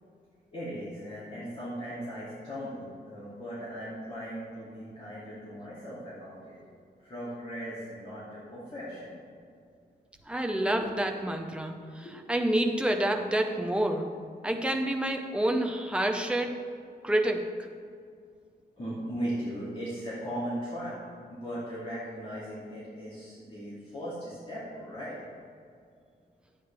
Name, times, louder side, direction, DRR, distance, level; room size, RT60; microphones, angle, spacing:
voice 1, 0.5-6.6 7.0-9.1 10.6-11.0 12.0-12.2 18.8-20.9 21.3-25.2, equal, 35° left, -10 dB, 2.6 m, -38 dB
voice 2, 10.3-14.1 14.4-16.6 17.0-17.4, right 1 dB, 5° right, 3 dB, 0.6 m, -28 dB
11.0 x 8.4 x 3.4 m, 2.2 s
wide cardioid pair, 180°, 17 cm